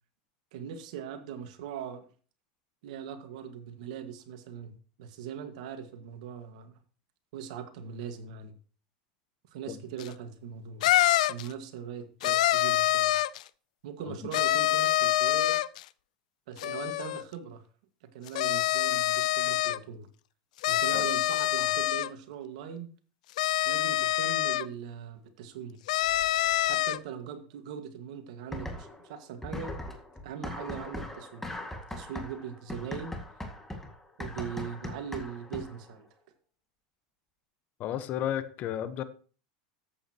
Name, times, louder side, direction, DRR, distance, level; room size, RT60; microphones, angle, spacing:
voice 1, 0.5-2.1 2.8-6.7 7.3-8.5 9.5-10.9 11.3-13.2 13.8-15.6 16.5-17.6 18.0-20.1 20.7-22.9 23.7-25.8 26.6-29.8 30.2-31.5 31.9-33.2 34.2-36.1, right 7 dB, 75° right, 8 dB, 1.7 m, -40 dB
sound 1, 10.0-10.1 10.8-11.5 12.2-13.4 14.3-15.8 16.6-17.2 18.3-19.8 20.6-22.1 23.4-24.7 25.9-27.0, left 15 dB, 80° left, 0.4 m, -26 dB
sound 2, 28.5-29.1 29.4-35.9, left 1 dB, 5° left, 2.0 m, -40 dB
voice 2, 37.8-39.0, left 11 dB, 45° left, 13 dB, 1.1 m, -33 dB
13.5 x 8.5 x 3.0 m, 0.41 s
supercardioid pair, 110°, 4 cm